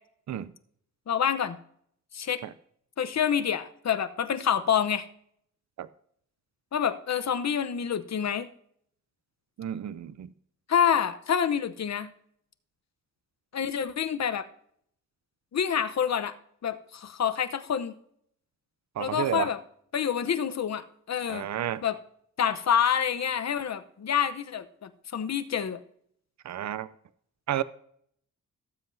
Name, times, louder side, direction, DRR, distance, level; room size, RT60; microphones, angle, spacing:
voice 1, 1.1-1.6 2.1-2.4 3.0-5.1 6.7-8.5 10.7-12.1 13.5-14.5 15.5-16.3 16.6-18.0 19.0-19.6 19.9-21.5 21.8-22.0 22.4-25.8, left 8 dB, 55° left, 0.9 m, -27 dB
voice 2, 9.6-10.3 19.0-19.5 21.3-21.8 26.4-26.9 27.5-27.6, right 10 dB, 60° right, 0.6 m, -31 dB
18.0 x 7.6 x 2.7 m
wide cardioid pair, 100°, 32 cm